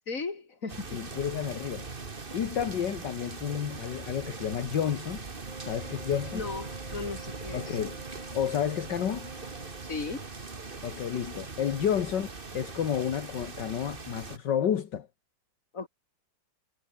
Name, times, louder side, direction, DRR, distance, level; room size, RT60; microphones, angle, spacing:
voice 1, 0.1-1.0 6.3-7.8 9.8-10.2 15.7-15.9, left 4 dB, 45° left, 3.4 m, -36 dB
sound 1, 0.7-14.4, right 4 dB, 30° right, 2.0 m, -41 dB
voice 2, 0.9-1.9 2.3-5.2 5.6-6.4 7.5-8.0 8.3-9.3 10.8-15.1, left 9 dB, 70° left, 2.0 m, -31 dB
Wind instrument woodwind instrument, 5.4-10.1, right 2 dB, 75° right, 6.9 m, -48 dB
omnidirectional pair, 2.0 m